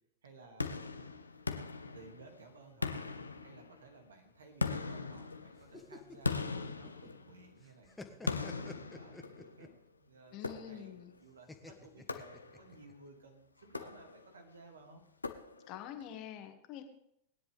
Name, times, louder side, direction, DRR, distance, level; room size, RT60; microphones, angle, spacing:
voice 1, 0.2-1.0 1.9-3.2 3.4-9.7 10.0-15.0, right 3 dB, 70° right, 4 dB, 2.5 m, -57 dB
sound 1, 0.6-2.4 2.8-4.0 4.6-7.6 8.3-9.7 10.4-11.1 12.1-12.8 13.6-14.4 15.2-15.9, left 4 dB, 80° left, 0.9 m, -40 dB
sound 2, 5.6-7.3 7.6-9.8 11.5-12.9, left 3 dB, 10° left, 1.4 m, -50 dB
voice 2, 10.3-11.1 15.7-16.8, left 10 dB, 40° left, 6 dB, 1.9 m, -46 dB
20.5 x 10.5 x 3.5 m, 0.74 s
figure-of-eight pair, 90°, 0 cm